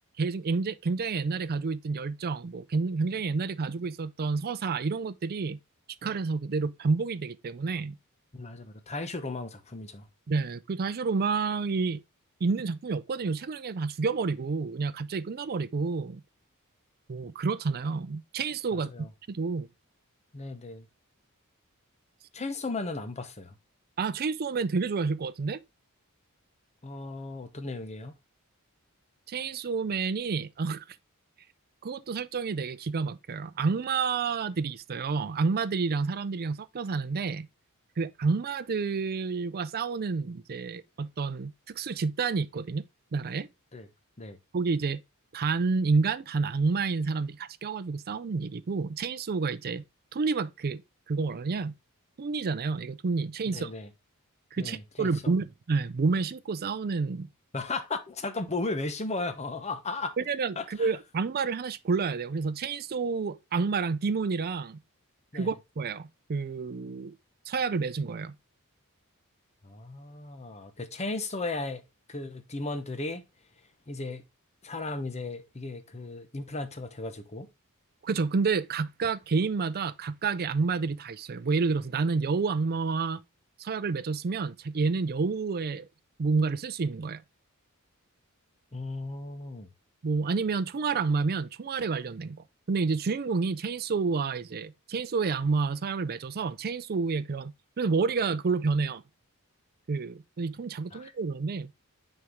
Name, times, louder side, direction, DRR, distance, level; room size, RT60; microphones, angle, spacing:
voice 1, 0.2-5.6 6.0-8.0 10.3-12.0 12.4-16.2 17.1-18.9 19.3-19.7 24.0-25.6 29.3-30.8 31.8-37.5 38.0-42.8 43.1-43.5 44.5-45.0 45.3-49.8 50.1-50.8 51.1-51.7 52.2-53.7 54.5-57.3 60.2-64.8 65.3-67.1 67.5-68.3 78.0-83.2 83.6-85.9 86.2-87.2 90.0-92.4 92.7-99.0 99.9-101.7, right 4 dB, 45° right, 0.5 m, -29 dB
voice 2, 8.3-10.0 18.7-19.1 20.3-20.9 22.3-23.5 26.8-28.1 43.7-43.9 44.2-44.4 53.5-53.9 54.6-55.3 57.5-60.1 60.6-60.9 65.3-65.5 69.6-71.8 72.1-73.2 73.9-74.2 74.6-77.5 88.7-89.7 100.9-101.1, left 3 dB, 30° left, 0.9 m, -35 dB
6.6 x 4.5 x 3.6 m
head